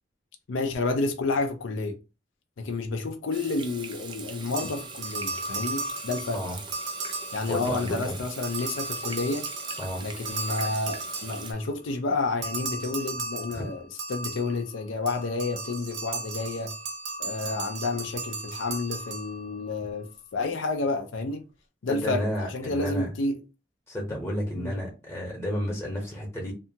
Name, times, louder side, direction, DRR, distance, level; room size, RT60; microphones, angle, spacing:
voice 1, 0.5-2.0 2.6-6.4 7.3-9.5 10.0-13.8 14.1-16.7 17.2-21.4 21.8-23.4 24.6-24.7, left 3 dB, 90° left, 0.5 m, -30 dB
Water tap faucet / Sink (filling or washing), 3.3-11.5, right 5 dB, 25° right, 0.3 m, -42 dB
sound 1, 4.5-8.0 8.3-11.8 12.4-19.7, right 3 dB, 70° right, 0.6 m, -36 dB
voice 2, 7.5-8.1 9.8-10.0 13.5-13.7 21.9-23.1 23.9-26.5, equal, 15° left, 0.8 m, -31 dB
2.7 x 2.3 x 2.7 m
head